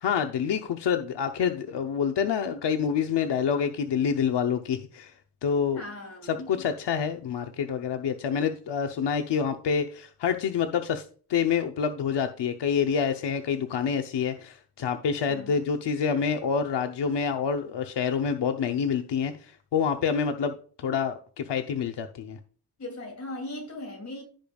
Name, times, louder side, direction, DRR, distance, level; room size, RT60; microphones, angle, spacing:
voice 1, 0.0-5.1 5.4-5.8 6.3-11.0 11.3-22.4, left 7 dB, 85° left, 0.8 m, -27 dB
voice 2, 5.7-6.6 15.3-15.6 22.8-24.2, left 1 dB, 40° left, 2.8 m, -39 dB
15.5 x 5.2 x 2.3 m
wide cardioid pair, 175°, 41 cm